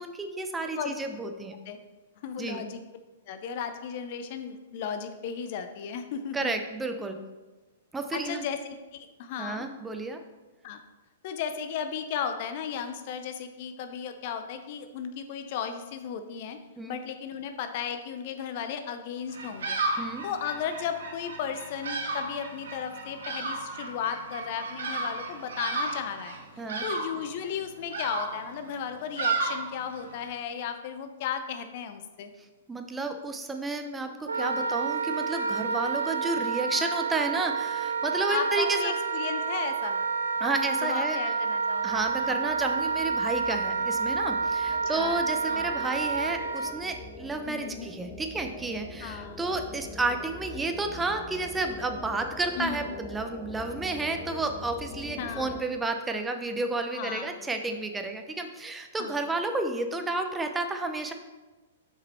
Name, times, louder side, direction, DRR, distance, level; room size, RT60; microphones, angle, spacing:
voice 1, 0.0-1.6 2.4-2.7 6.3-7.2 7.9-8.4 9.4-10.2 16.8-17.0 20.0-20.3 26.6-26.9 32.7-38.9 40.4-41.2 41.8-61.1, right 3 dB, 10° right, 6 dB, 0.7 m, -31 dB
voice 2, 2.2-2.8 3.3-6.5 8.1-9.6 10.6-10.8 11.2-16.6 16.9-19.8 20.2-26.4 26.8-32.3 38.3-40.0 40.8-41.9 42.2-42.3 44.9-45.2 45.5-45.8 47.5-48.1 49.0-49.6 52.6-52.9 55.2-55.5 56.9-57.3 59.0-59.1, left 7 dB, 50° left, 8 dB, 0.6 m, -35 dB
Bird vocalization bird call bird song, 19.3-30.3, right 3 dB, 70° right, 1.1 m, -34 dB
Wind instrument woodwind instrument, 34.3-46.7, right 4 dB, 90° right, 0.6 m, -29 dB
sound 1, 41.8-55.6, left 2 dB, 20° left, 0.8 m, -44 dB
6.2 x 5.1 x 4.3 m, 1.2 s
hypercardioid pair, 115°, 0 cm